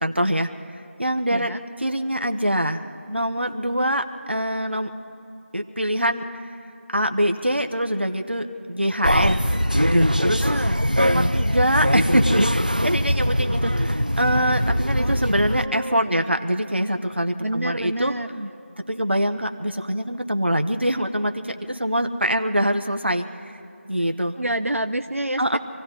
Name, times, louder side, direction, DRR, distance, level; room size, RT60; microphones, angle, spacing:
voice 1, 0.0-0.5 1.0-1.5 1.8-4.9 5.5-6.3 6.9-10.5 11.0-18.1 18.9-23.3 23.8-24.4 25.4-25.6, equal, 55° right, 5 dB, 1.1 m, -24 dB
sound 1, 9.0-15.7, equal, 40° right, 0.5 m, -21 dB
voice 2, 10.4-10.8 15.0-16.2 17.4-18.5 24.4-25.6, right 1 dB, 85° right, 6 dB, 0.7 m, -28 dB
27.0 x 15.5 x 3.0 m, 2.7 s
figure-of-eight pair, 180°, 7 cm